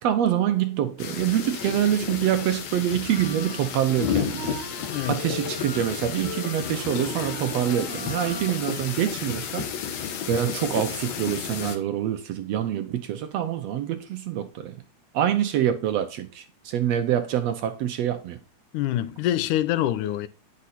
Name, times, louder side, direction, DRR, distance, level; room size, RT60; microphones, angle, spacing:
voice 1, 0.0-4.5 5.1-9.7 10.3-14.8 15.1-18.4, right 10 dB, 70° right, 1.6 m, -25 dB
sound 1, 1.0-11.8, left 8 dB, 65° left, 2.3 m, -32 dB
sound 2, 3.0-8.8, right 1 dB, 40° left, 7.0 m, -39 dB
voice 2, 4.9-5.2 18.7-20.3, left 13 dB, 90° left, 2.2 m, -25 dB
9.6 x 6.5 x 4.2 m
omnidirectional pair, 3.5 m